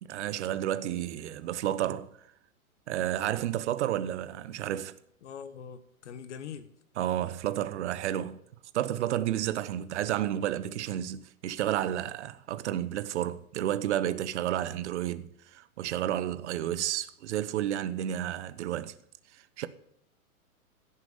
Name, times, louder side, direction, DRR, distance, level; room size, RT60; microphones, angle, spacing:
voice 1, 0.0-2.1 2.9-5.0 7.0-8.4 8.7-19.0 19.6-19.7, right 12 dB, 50° right, 1.0 m, -31 dB
voice 2, 5.2-6.7, left 7 dB, 50° left, 1.2 m, -43 dB
16.5 x 7.0 x 7.3 m
figure-of-eight pair, 115°, 44 cm